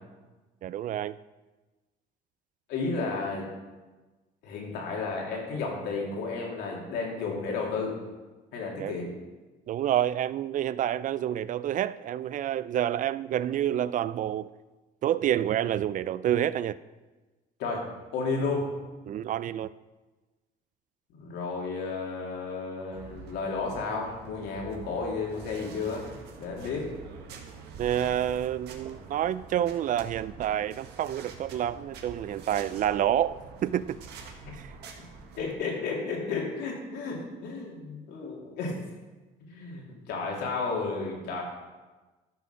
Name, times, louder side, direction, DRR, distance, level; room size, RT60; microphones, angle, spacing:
voice 1, 0.6-1.2 8.8-9.0 9.7-14.5 15.0-16.8 19.1-19.7 27.8-34.0 34.6-34.7, right 11 dB, 50° right, 0.4 m, -28 dB
voice 2, 2.7-3.5 4.4-8.0 8.5-9.1 17.6-17.8 18.1-18.7 21.1-26.1 26.4-26.9 35.4-38.8 39.5-41.4, left 4 dB, 85° left, 2.9 m, -32 dB
sound 1, 22.9-35.5, right 5 dB, 80° right, 1.6 m, -46 dB
13.0 x 6.2 x 5.8 m
cardioid pair, 110°, 17 cm